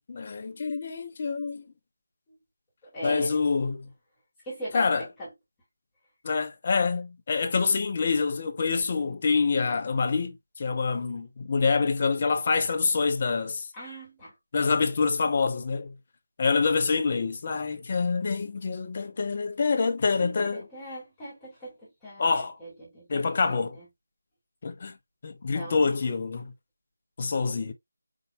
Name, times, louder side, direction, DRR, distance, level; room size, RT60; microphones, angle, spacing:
voice 1, 0.1-1.7 3.0-3.8 4.7-5.1 6.2-13.7 14.5-15.9 16.4-20.7 22.2-22.6 23.1-23.8 24.6-25.0 25.2-26.5 27.2-27.7, left 4 dB, 35° left, 0.7 m, -26 dB
voice 2, 2.9-3.4 4.4-5.3 13.7-14.3 20.2-23.8 25.5-26.0, equal, 10° left, 2.1 m, -39 dB
5.0 x 4.0 x 2.3 m
figure-of-eight pair, 170°, 0 cm